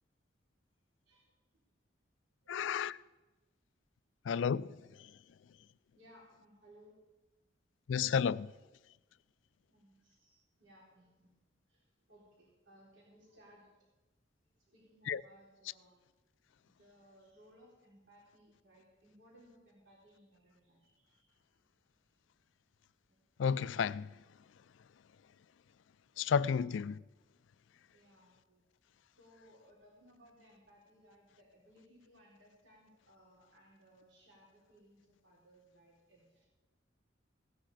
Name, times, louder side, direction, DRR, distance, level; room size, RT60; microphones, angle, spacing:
voice 1, 2.5-3.0 4.3-4.7 7.9-8.5 15.1-15.2 23.4-24.1 26.2-26.9, left 7 dB, 80° left, 0.4 m, -31 dB
voice 2, 5.9-6.9 9.7-11.3 11.7-13.7 14.7-16.0 16.7-21.4 23.1-23.2 26.1-26.7 27.9-28.6 29.2-36.5, equal, 75° right, 4.0 m, -63 dB
16.5 x 10.0 x 4.9 m
head